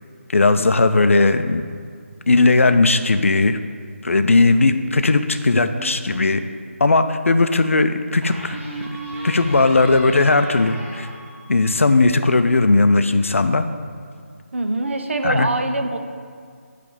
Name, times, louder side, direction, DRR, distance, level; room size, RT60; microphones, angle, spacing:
voice 1, 0.3-1.6 2.3-3.6 4.0-6.4 6.8-8.6 8.9-11.1 11.5-13.7 15.2-15.5, left 3 dB, 65° left, 9 dB, 0.5 m, -17 dB
sound 1, 5.5-6.4 8.2-12.0, right 1 dB, 10° right, 1.0 m, -34 dB
voice 2, 14.5-16.0, right 2 dB, 55° right, 6 dB, 0.7 m, -23 dB
9.9 x 3.4 x 5.5 m, 2.1 s
figure-of-eight pair, 160°, 8 cm